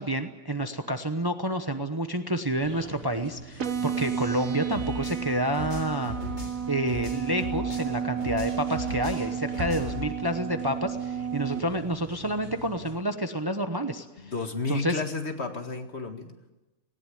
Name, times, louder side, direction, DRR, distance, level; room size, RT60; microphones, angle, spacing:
voice 1, 0.0-6.1 6.7-14.3 14.7-15.0, right 1 dB, 20° right, 7 dB, 0.9 m, -29 dB
sound 1, 2.6-13.0, right 3 dB, 45° right, 2.8 m, -44 dB
sound 2, 3.6-11.6, right 7 dB, 75° right, 1.7 m, -32 dB
sound 3, 4.7-10.0, left 3 dB, 65° left, 4.3 m, -38 dB
voice 2, 14.2-16.3, left 3 dB, 50° left, 6 dB, 2.1 m, -32 dB
19.0 x 18.0 x 9.9 m, 1.1 s
omnidirectional pair, 1.4 m